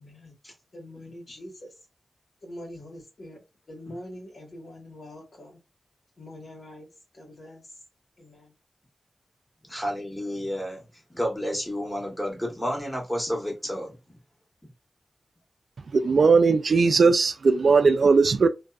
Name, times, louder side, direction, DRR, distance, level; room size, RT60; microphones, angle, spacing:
voice 1, 0.0-0.3 0.7-1.7 2.4-5.6 6.2-6.9 7.1-7.8 8.2-8.5, left 1 dB, 65° left, 1.4 m, -44 dB
voice 2, 9.7-10.8 11.1-14.0, equal, 15° left, 1.4 m, -30 dB
voice 3, 15.9-18.5, right 4 dB, 75° right, 0.3 m, -18 dB
2.6 x 2.4 x 2.3 m
cardioid pair, 50°, 0 cm